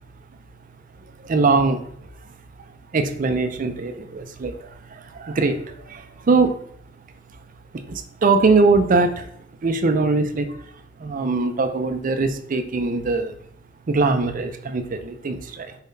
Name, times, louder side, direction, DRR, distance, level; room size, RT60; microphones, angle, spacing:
voice 1, 1.2-1.8 2.9-6.5 7.7-9.3 9.6-10.6 11.0-13.3 13.9-15.8, right 3 dB, 45° right, 8 dB, 0.4 m, -21 dB
4.5 x 3.7 x 2.6 m, 0.67 s
head